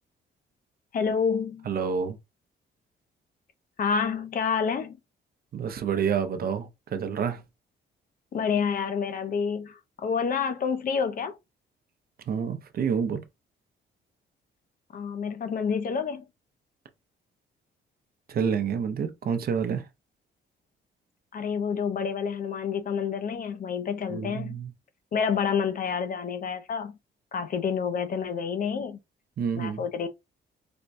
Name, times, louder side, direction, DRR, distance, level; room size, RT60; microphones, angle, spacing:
voice 1, 0.9-1.7 3.8-5.0 8.3-11.4 14.9-16.2 21.3-24.6 25.1-26.9 27.3-29.0 29.6-30.1, left 6 dB, 45° left, 0.5 m, -28 dB
voice 2, 1.7-2.2 5.5-7.4 12.3-13.2 18.3-19.8 24.1-24.7 29.4-29.8, right 7 dB, 50° right, 0.6 m, -28 dB
4.3 x 2.2 x 2.5 m
cardioid pair, 90°, 20 cm